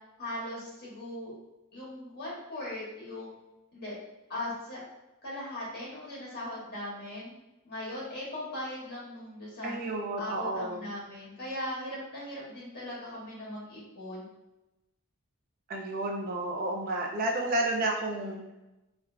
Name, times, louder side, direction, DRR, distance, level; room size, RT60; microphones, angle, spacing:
voice 1, 0.2-1.3 1.7-3.4 3.7-3.9 4.3-4.8 5.2-7.3 7.6-9.8 10.2-14.2, left 1 dB, 45° left, -7 dB, 1.4 m, -39 dB
voice 2, 9.6-10.9 15.7-18.4, right 2 dB, 40° right, 0 dB, 0.4 m, -31 dB
3.1 x 2.4 x 2.3 m, 0.97 s
head